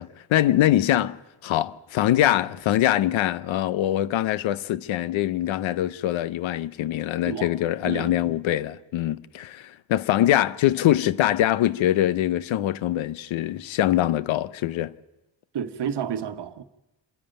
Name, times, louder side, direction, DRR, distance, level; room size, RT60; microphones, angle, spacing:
voice 1, 0.0-14.9, left 13 dB, 85° left, 0.8 m, -23 dB
voice 2, 7.8-8.2 10.9-11.0 15.5-16.6, right 8 dB, 60° right, 1.2 m, -31 dB
27.0 x 10.5 x 8.9 m
cardioid pair, 80°, 46 cm